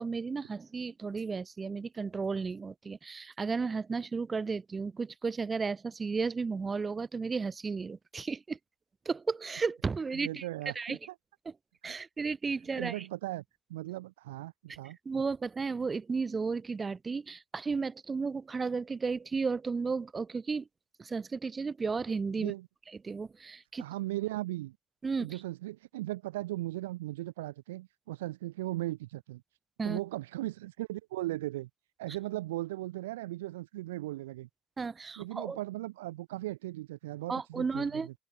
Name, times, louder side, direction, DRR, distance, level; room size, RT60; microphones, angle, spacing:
voice 1, 0.0-8.6 9.0-10.5 10.7-11.0 11.4-11.5 11.8-13.0 15.0-20.7 21.0-22.5 23.0-23.8 25.0-25.4 29.8-30.0 34.8-35.6 37.3-38.1, right 4 dB, 30° right, 1.7 m, -33 dB
voice 2, 10.1-11.0 11.9-12.0 12.7-13.4 13.7-15.0 22.4-22.7 23.8-24.8 25.2-29.4 29.8-31.7 32.0-34.5 35.2-38.1, right 17 dB, 80° right, 0.5 m, -37 dB
open air
hypercardioid pair, 55°, 0 cm